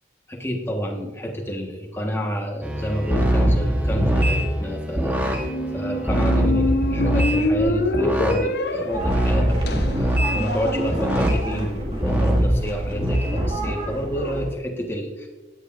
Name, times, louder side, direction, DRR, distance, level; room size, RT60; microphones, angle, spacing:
voice 1, 0.3-5.4 5.7-15.3, equal, 15° left, 1 dB, 1.4 m, -29 dB
sound 1, 2.6-8.4 9.0-10.4 10.9-11.4 12.0-13.3, equal, 10° right, 1.2 m, -22 dB
Squeak, 5.4-11.3, left 1 dB, 65° left, 0.9 m, -26 dB
sound 2, 8.9-14.5, right 1 dB, 30° right, 2.0 m, -30 dB
16.0 x 9.6 x 2.6 m, 1.2 s
head